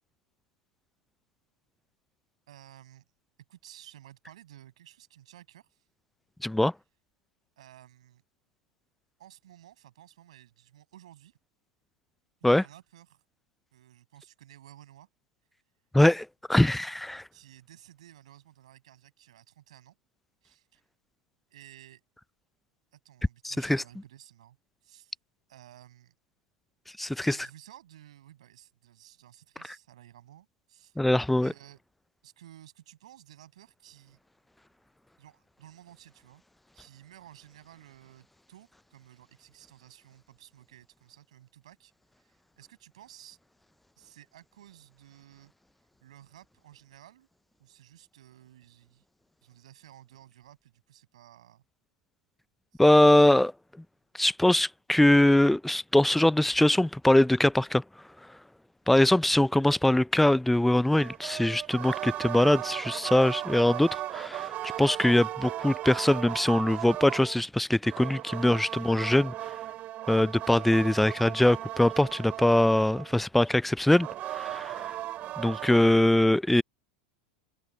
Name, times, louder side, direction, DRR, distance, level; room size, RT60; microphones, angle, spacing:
voice 1, 2.5-3.0 3.5-5.9 7.6-8.2 9.2-11.4 12.4-13.2 13.7-15.1 17.3-20.0 20.4-20.8 21.5-22.0 22.9-24.6 24.8-25.2 25.5-26.1 27.2-31.0 31.4-31.8 32.2-34.2 35.2-36.4 36.7-41.9 42.2-43.4 44.0-45.5 46.0-47.3 47.6-49.0 49.4-51.6 52.7-52.8 58.9-59.1, right 12 dB, 75° right, 8.0 m, -54 dB
voice 2, 6.4-6.7 12.4-12.6 15.9-17.2 23.4-23.8 27.0-27.4 31.0-31.5 52.8-53.5 54.2-57.8 58.9-64.5 64.8-69.3 70.1-74.9 75.4-76.6, left 1 dB, 5° left, 0.5 m, -22 dB
sound 1, 60.9-67.4 67.8-73.3 73.9-75.8, right 14 dB, 45° right, 2.5 m, -37 dB
hypercardioid pair, 95°, 3 cm